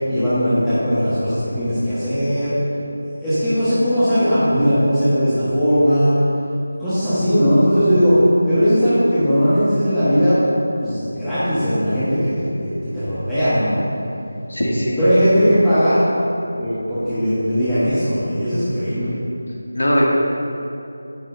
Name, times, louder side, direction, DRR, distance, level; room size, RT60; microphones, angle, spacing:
voice 1, 0.1-2.5 3.2-6.2 6.8-8.2 8.4-10.4 10.8-12.3 12.6-13.8 15.0-16.0 16.6-19.1, equal, 10° left, -18 dB, 1.5 m, -18 dB
voice 2, 14.5-15.0 19.7-20.1, equal, 85° left, -3 dB, 1.7 m, -19 dB
9.3 x 7.2 x 2.8 m, 2.8 s
figure-of-eight pair, 170°, 0 cm